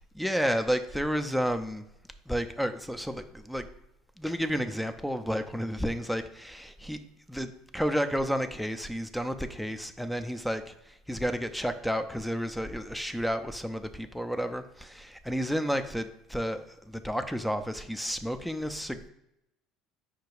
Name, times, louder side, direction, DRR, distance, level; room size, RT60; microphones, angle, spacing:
voice 1, 0.1-1.9 2.3-3.7 4.2-7.0 7.3-19.1, equal, ahead, 9 dB, 0.4 m, -31 dB
5.0 x 2.2 x 4.7 m, 0.83 s
supercardioid pair, 80°, 0 cm